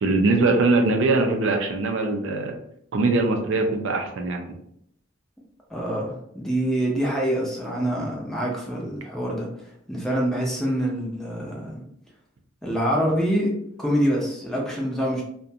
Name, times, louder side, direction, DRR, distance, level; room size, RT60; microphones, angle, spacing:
voice 1, 0.0-2.6 2.9-4.5, right 3 dB, 70° right, 4 dB, 0.4 m, -22 dB
voice 2, 5.7-9.5 9.9-11.8 12.6-13.5 13.8-15.2, equal, ahead, -3 dB, 0.5 m, -25 dB
2.4 x 2.1 x 2.7 m, 0.71 s
head